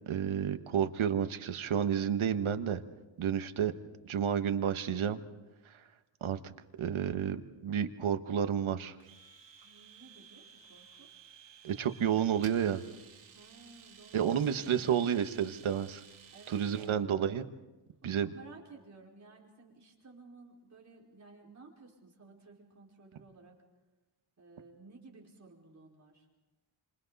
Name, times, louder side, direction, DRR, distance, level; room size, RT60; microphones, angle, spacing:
voice 1, 0.1-2.8 3.2-3.7 4.0-5.2 6.2-6.5 6.8-9.0 11.6-12.8 14.1-16.0 16.5-17.5 18.0-18.3, right 8 dB, 90° right, 8 dB, 1.4 m, -30 dB
Domestic sounds home sounds, 9.0-16.9, right 7 dB, 70° right, 3.1 m, -55 dB
voice 2, 9.6-11.1 11.7-12.1 13.3-14.9 16.3-17.2 18.0-23.6 24.4-26.3, right 3 dB, 35° right, -2 dB, 5.0 m, -55 dB
29.5 x 27.0 x 4.1 m, 1.1 s
wide cardioid pair, 160°, 47 cm